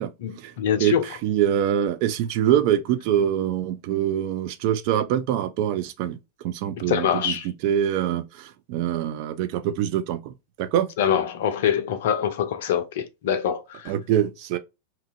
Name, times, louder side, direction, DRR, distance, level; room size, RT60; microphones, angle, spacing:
voice 1, 0.2-1.1 6.9-7.5 11.0-13.9, left 8 dB, 55° left, 0.5 m, -24 dB
voice 2, 1.2-6.2 6.4-7.4 7.6-10.9 13.9-14.6, right 10 dB, 45° right, 0.4 m, -24 dB
2.8 x 2.4 x 2.5 m
figure-of-eight pair, 90°, 0 cm